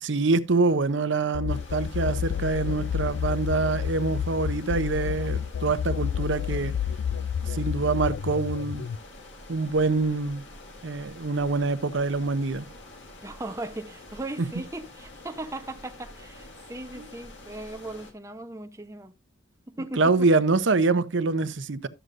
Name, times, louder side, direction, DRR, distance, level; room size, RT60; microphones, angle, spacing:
voice 1, 0.0-6.7 7.5-8.8 9.5-10.4 10.8-12.7 17.0-17.1 20.0-21.9, right 3 dB, 70° right, 0.7 m, -25 dB
sound 1, 1.3-9.0, left 8 dB, 90° left, 0.4 m, -30 dB
sound 2, 1.5-18.1, left 2 dB, 70° left, 2.0 m, -47 dB
voice 2, 13.2-19.1 19.7-20.3, right 2 dB, 15° right, 0.7 m, -38 dB
12.5 x 7.9 x 2.5 m
head